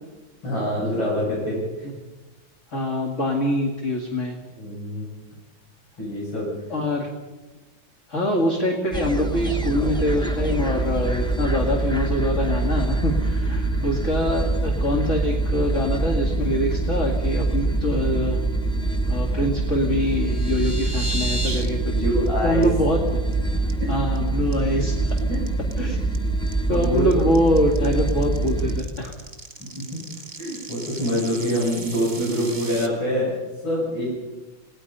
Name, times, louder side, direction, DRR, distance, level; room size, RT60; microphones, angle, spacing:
voice 1, 0.4-1.9 4.6-5.1 6.0-6.8 18.7-18.9 21.9-22.7 23.8-23.9 25.3-25.4 25.8-25.9 26.7-27.3 30.4-33.4 33.6-34.1, equal, 70° left, -6 dB, 7.9 m, -25 dB
voice 2, 2.7-4.4 6.7-7.1 8.1-18.4 19.1-21.9 22.4-23.0 23.9-25.1 25.8-26.0 26.7-29.1, left 1 dB, 35° left, 1 dB, 2.6 m, -24 dB
sound 1, 8.9-28.8, right 2 dB, 5° left, 0.9 m, -24 dB
sound 2, 20.0-21.7 22.0-22.3 22.6-22.7 23.1-23.3 23.7-24.2 24.5-32.9, right 1 dB, 25° right, 2.0 m, -35 dB
29.0 x 18.5 x 5.6 m, 1.2 s
omnidirectional pair, 2.2 m